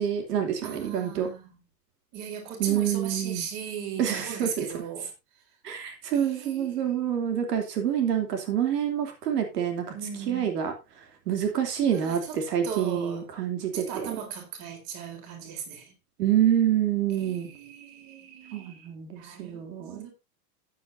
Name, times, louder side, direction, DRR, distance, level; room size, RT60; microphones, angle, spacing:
voice 1, 0.0-1.3 2.6-3.5 4.0-4.6 5.6-9.8 10.3-10.7 11.3-14.1 16.2-17.5 18.5-20.0, right 9 dB, 70° right, 3.1 m, -27 dB
voice 2, 0.6-1.6 2.1-5.1 6.1-7.0 9.9-10.5 11.8-12.4 12.6-13.2 13.7-15.9 17.1-18.9 19.2-20.1, right 8 dB, 35° right, 4.0 m, -38 dB
14.0 x 9.9 x 2.7 m
supercardioid pair, 165°, 50 cm